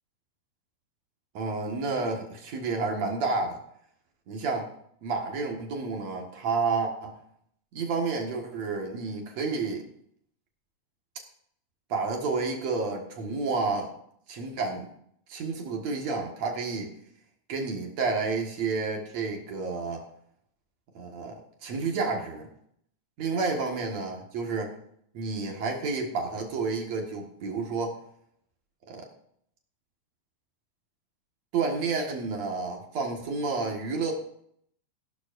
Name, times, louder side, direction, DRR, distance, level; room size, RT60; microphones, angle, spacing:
voice 1, 1.3-3.6 4.3-4.7 5.0-7.2 7.7-9.8 11.9-13.9 14.3-14.9 15.3-16.9 17.5-20.0 20.9-22.5 23.2-24.7 25.1-28.0 28.9-29.1 31.5-34.1, right 4 dB, 55° right, 1 dB, 2.2 m, -30 dB
17.0 x 11.5 x 2.6 m, 0.69 s
omnidirectional pair, 4.8 m